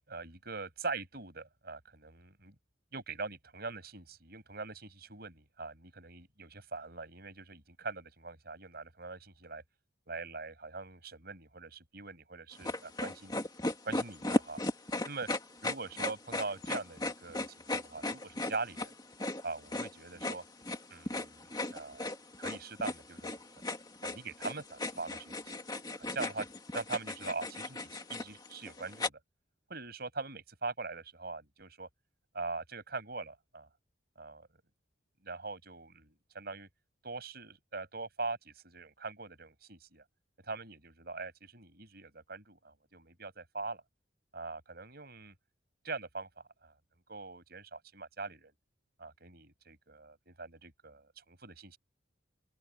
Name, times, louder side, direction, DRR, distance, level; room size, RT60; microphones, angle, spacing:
voice 1, 0.0-2.5 2.9-9.6 10.1-13.4 13.8-14.6 15.0-15.3 15.6-18.9 19.4-20.4 20.9-22.1 22.4-23.3 24.0-25.5 26.0-26.5 26.7-29.2 29.7-31.9 32.3-33.7 34.2-34.5 35.2-36.7 37.0-40.0 40.4-43.8 44.3-45.3 45.8-46.7 47.1-48.5 49.0-51.8, right 3 dB, 55° right, 6.8 m, -42 dB
sound 1, 12.6-29.1, left 2 dB, 20° left, 2.3 m, -36 dB
open air
head